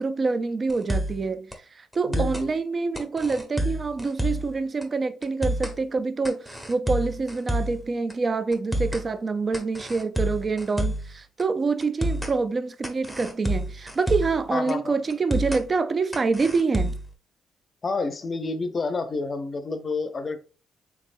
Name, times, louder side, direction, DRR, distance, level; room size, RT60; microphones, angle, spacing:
voice 1, 0.0-1.5 1.7-16.9, right 4 dB, 40° right, 0.4 m, -26 dB
sound 1, 0.7-1.2 1.5-1.6 1.9-2.5 3.0-4.5 4.8-4.9 5.2-5.8 6.2-7.8 8.1-8.2 8.5-9.1 9.5-11.1 11.4-11.5 11.8-12.3 12.8-14.4 14.7-14.8 15.1-15.6 16.1-17.1, right 1 dB, ahead, 0.8 m, -28 dB
voice 2, 2.1-2.5 14.5-15.0 17.8-20.4, left 3 dB, 40° left, 0.6 m, -29 dB
3.4 x 3.2 x 2.5 m
supercardioid pair, 65°, 0 cm